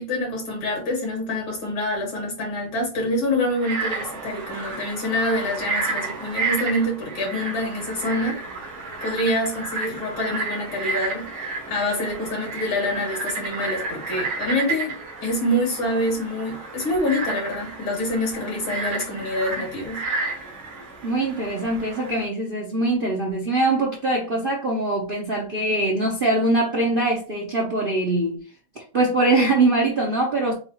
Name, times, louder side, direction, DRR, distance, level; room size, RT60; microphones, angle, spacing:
voice 1, 0.0-8.4 9.0-14.9 15.2-20.1, left 1 dB, 90° left, 3.0 m, -26 dB
Frog, 3.5-22.2, right 3 dB, 85° right, 2.3 m, -31 dB
voice 2, 21.0-28.4 28.8-30.5, right 2 dB, 50° right, 0.6 m, -22 dB
6.9 x 2.4 x 3.0 m
omnidirectional pair, 2.2 m